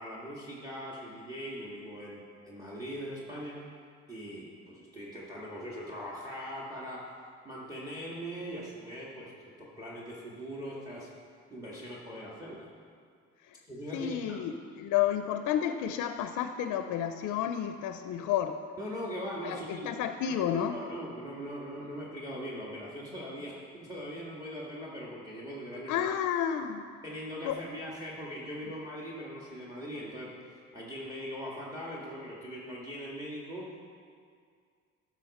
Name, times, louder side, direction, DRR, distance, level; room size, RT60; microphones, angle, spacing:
voice 1, 0.0-3.6 4.1-7.1 7.4-11.1 11.5-12.7 13.7-14.2 18.8-19.9 20.3-26.0 27.0-30.3 30.7-33.8, equal, 10° right, -4 dB, 1.7 m, -41 dB
voice 2, 13.9-18.6 19.4-20.7 25.9-26.8 27.4-27.6, left 10 dB, 90° left, 8 dB, 0.5 m, -31 dB
11.5 x 6.1 x 4.2 m, 2.1 s
cardioid pair, 90°, 30 cm